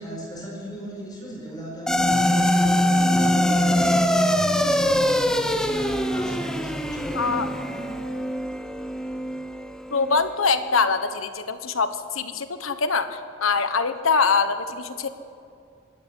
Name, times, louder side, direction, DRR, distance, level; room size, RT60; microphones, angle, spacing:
voice 1, 0.0-7.8, equal, 20° left, -3 dB, 4.9 m, -37 dB
sound 1, 1.9-10.4, left 1 dB, 5° left, 1.0 m, -23 dB
voice 2, 7.1-7.5 9.9-15.1, left 4 dB, 80° left, 10 dB, 1.3 m, -23 dB
25.5 x 12.5 x 10.0 m, 2.5 s
head